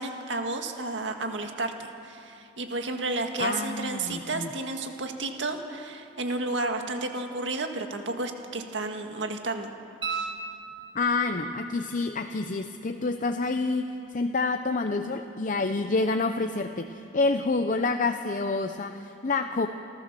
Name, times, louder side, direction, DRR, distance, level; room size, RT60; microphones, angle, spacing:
voice 1, 0.0-9.7 10.1-10.3, right 2 dB, 90° right, 4 dB, 1.9 m, -32 dB
voice 2, 3.4-4.5 10.9-19.7, left 3 dB, 45° left, 7 dB, 0.7 m, -28 dB
sound 1, 10.0-11.3 14.1-14.2, right 5 dB, 70° right, 1.9 m, -35 dB
28.5 x 13.5 x 6.8 m, 2.8 s
head